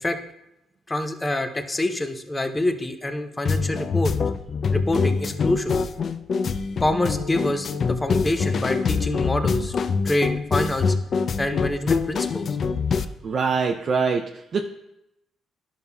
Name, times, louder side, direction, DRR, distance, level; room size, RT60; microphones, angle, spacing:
voice 1, 0.9-4.1 4.7-5.8 6.8-9.8 10.0-10.9 11.4-12.5, left 1 dB, 20° left, 7 dB, 0.7 m, -26 dB
sound 1, 3.4-13.0, left 5 dB, 50° left, 0.3 m, -24 dB
voice 2, 13.0-14.2 14.5-14.7, right 5 dB, 50° right, 3 dB, 0.4 m, -24 dB
11.5 x 5.4 x 2.3 m, 0.86 s
cardioid pair, 90°, 0 cm